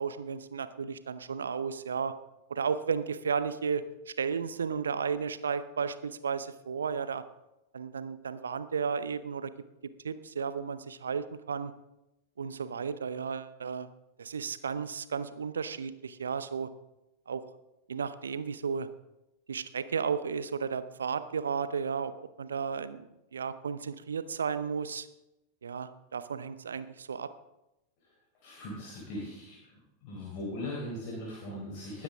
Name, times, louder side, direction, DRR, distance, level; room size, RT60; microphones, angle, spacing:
voice 1, 0.0-2.1 2.5-7.2 7.7-9.5 10.0-11.7 12.4-13.9 14.2-16.7 17.3-17.4 17.9-18.9 19.5-22.1 22.4-25.1 25.6-27.3, right 6 dB, 70° right, 13 dB, 0.8 m, -33 dB
voice 2, 28.4-29.6 30.0-32.0, left 1 dB, 45° left, -4 dB, 4.4 m, -39 dB
20.0 x 9.7 x 3.6 m, 0.93 s
figure-of-eight pair, 90°, 0 cm